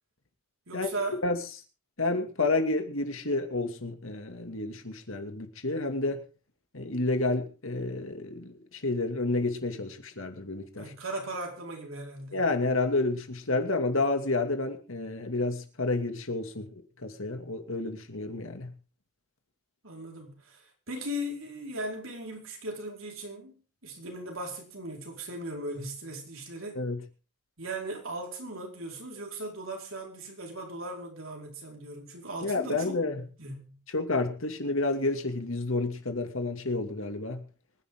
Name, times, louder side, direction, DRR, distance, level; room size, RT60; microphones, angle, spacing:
voice 1, 0.7-1.2 10.8-12.4 19.8-26.8 27.6-33.0 33.4-33.8, right 1 dB, 70° right, 4.8 m, -38 dB
voice 2, 2.0-6.2 6.7-10.9 12.3-18.7 26.7-27.0 32.4-33.2 33.9-37.4, left 2 dB, 65° left, 2.5 m, -30 dB
25.0 x 10.5 x 3.8 m
head